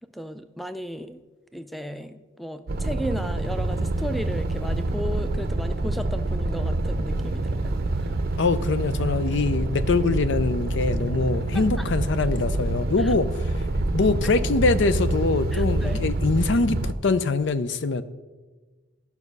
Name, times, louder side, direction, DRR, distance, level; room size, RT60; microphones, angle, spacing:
voice 1, 0.1-1.2 1.5-8.1 11.8-11.9 13.0-13.1 15.5-16.0, equal, ahead, 10 dB, 0.3 m, -35 dB
sound 1, 2.7-16.9, right 2 dB, 50° right, 0.6 m, -26 dB
voice 2, 8.4-13.5 13.9-18.0, left 3 dB, 60° left, 13 dB, 0.5 m, -23 dB
12.5 x 6.0 x 5.3 m, 1.3 s
head